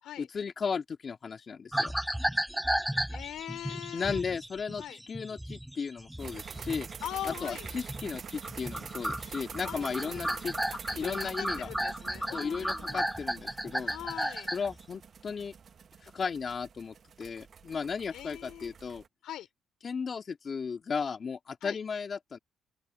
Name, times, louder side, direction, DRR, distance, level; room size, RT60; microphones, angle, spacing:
voice 1, 0.2-1.9 3.9-6.9 7.3-10.5 10.9-11.7 12.3-13.9 14.5-15.5 16.0-19.0 19.8-22.4, left 5 dB, 40° left, 2.1 m, -35 dB
sound 1, 1.7-8.2 8.4-14.7, equal, 5° right, 0.7 m, -34 dB
voice 2, 3.1-4.2 4.8-5.0 7.0-7.7 9.7-10.4 10.9-13.1 13.8-14.5 18.1-18.7 19.2-19.5 21.6-21.8, left 12 dB, 70° left, 3.8 m, -41 dB
sound 2, 6.2-19.1, right 6 dB, 45° right, 0.9 m, -46 dB
open air
cardioid pair, 90°, 0 cm